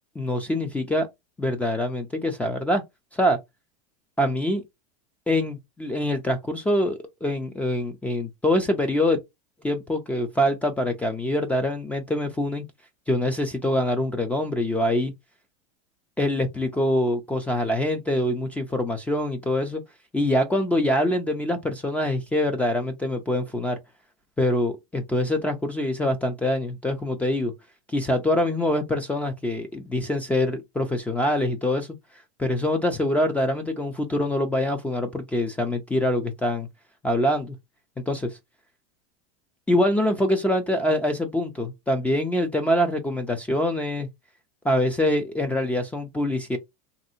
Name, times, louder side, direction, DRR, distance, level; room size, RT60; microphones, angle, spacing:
voice 1, 0.2-1.1 1.4-2.8 3.1-3.4 4.2-4.6 5.3-9.2 9.6-12.6 13.1-15.1 16.2-19.8 20.1-23.8 24.4-27.5 27.9-31.9 32.4-36.7 37.0-37.6 38.1-38.3 39.7-44.1 44.6-46.6, left 1 dB, 5° left, 0.4 m, -24 dB
3.3 x 2.6 x 2.6 m
supercardioid pair, 145°, 20 cm